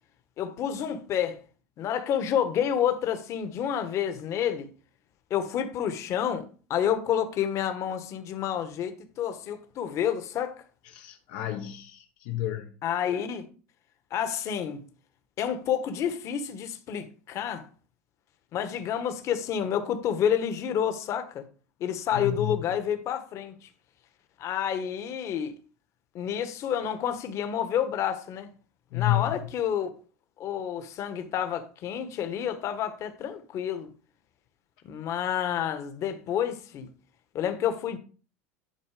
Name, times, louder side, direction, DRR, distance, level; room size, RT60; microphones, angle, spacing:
voice 1, 0.4-1.4 1.8-4.7 5.3-6.4 6.7-10.6 12.8-13.5 14.1-14.8 15.4-17.7 18.5-21.5 21.8-23.7 24.4-25.6 26.1-28.5 28.9-29.9 30.4-33.9 34.8-36.9 37.3-38.0, left 9 dB, 45° left, 1.5 m, -29 dB
voice 2, 10.9-12.7 22.1-22.6 28.9-29.3, left 14 dB, 65° left, 1.1 m, -30 dB
11.0 x 4.3 x 5.1 m
supercardioid pair, 110°, 7 cm